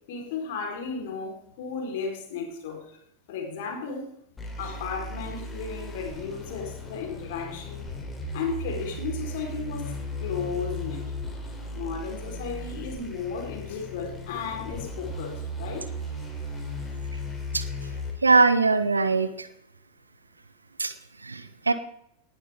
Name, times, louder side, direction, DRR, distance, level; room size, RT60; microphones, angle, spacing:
voice 1, 0.1-3.0 3.3-4.1 4.6-7.8 8.3-11.1 11.7-15.9, left 5 dB, 50° left, 4.3 m, -34 dB
sound 1, 4.4-18.1, left 1 dB, 15° left, 3.5 m, -36 dB
voice 2, 18.2-19.5 20.8-20.9 21.2-21.7, right 3 dB, 80° right, 1.0 m, -21 dB
19.0 x 11.5 x 3.7 m
figure-of-eight pair, 90°, 0 cm